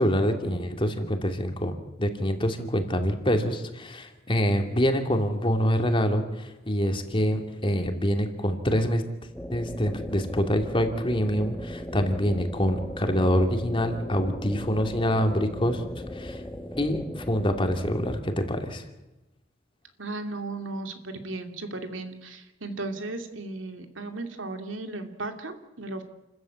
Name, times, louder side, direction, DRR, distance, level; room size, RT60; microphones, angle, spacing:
voice 1, 0.0-1.7 2.0-9.0 9.5-15.8 16.1-16.4 16.8-18.8, equal, 25° left, 5 dB, 2.5 m, -25 dB
sound 1, 9.3-18.2, equal, 10° left, 1.5 m, -38 dB
voice 2, 20.0-26.0, right 2 dB, 90° right, 6 dB, 2.6 m, -35 dB
29.0 x 14.0 x 8.7 m, 1.0 s
head